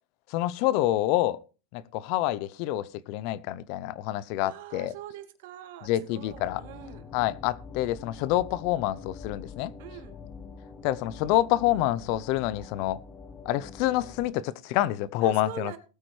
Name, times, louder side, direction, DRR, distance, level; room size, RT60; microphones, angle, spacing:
voice 1, 0.3-1.4 1.7-4.9 5.8-6.6 7.1-9.7 10.8-13.0 13.4-15.8, left 14 dB, 55° left, 0.6 m, -27 dB
voice 2, 4.4-7.0 9.8-10.1 15.2-15.8, right 12 dB, 65° right, 2.2 m, -43 dB
sound 1, 6.3-14.3, left 5 dB, 15° left, 1.4 m, -45 dB
19.5 x 8.7 x 3.3 m
hypercardioid pair, 125°, 0 cm